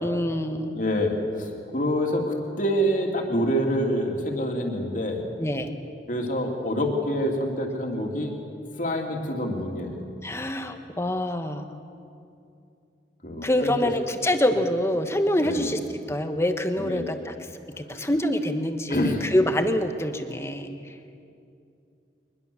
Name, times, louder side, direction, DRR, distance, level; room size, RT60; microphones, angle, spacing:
voice 1, 0.0-0.8 5.4-5.7 10.2-11.7 13.4-15.8 16.1-17.3 17.8-20.7, left 1 dB, 15° left, 7 dB, 1.3 m, -25 dB
voice 2, 0.7-5.2 6.1-8.3 8.8-10.0 13.2-13.7 15.4-15.7 16.8-17.1 18.9-19.2, equal, 45° left, 2 dB, 3.0 m, -26 dB
23.5 x 21.0 x 7.1 m, 2.5 s
head